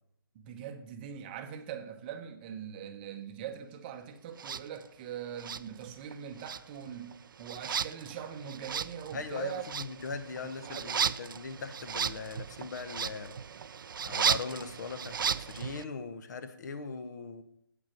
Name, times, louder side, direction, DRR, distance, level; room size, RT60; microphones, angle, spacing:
voice 1, 0.3-9.6 10.4-10.9, right 8 dB, 25° right, 0.8 m, -42 dB
sound 1, 4.4-4.6 5.4-6.1 6.4-15.8, right 7 dB, 60° right, 0.4 m, -35 dB
voice 2, 9.1-13.3 14.0-17.4, left 5 dB, 50° left, 1.1 m, -40 dB
8.5 x 8.0 x 6.0 m
figure-of-eight pair, 145°, 13 cm